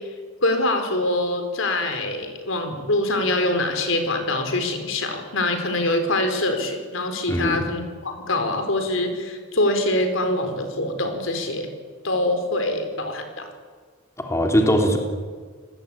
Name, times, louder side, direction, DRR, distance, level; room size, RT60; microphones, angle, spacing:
voice 1, 0.4-11.7 12.0-13.5, left 1 dB, 70° left, 6 dB, 4.6 m, -24 dB
voice 2, 7.3-7.6 14.2-15.0, equal, 15° left, 2 dB, 3.2 m, -20 dB
28.5 x 20.0 x 9.0 m, 1.5 s
head